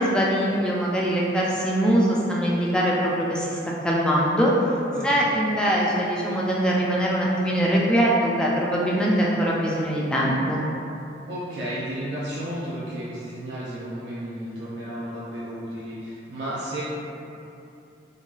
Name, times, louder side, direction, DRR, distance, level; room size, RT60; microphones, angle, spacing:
voice 1, 0.0-3.6 3.8-4.5 5.0-10.7, equal, 5° left, -5 dB, 0.3 m, -22 dB
voice 2, 4.9-5.3 11.3-16.8, right 1 dB, 75° right, -9 dB, 0.4 m, -33 dB
3.8 x 2.2 x 2.4 m, 2.7 s
head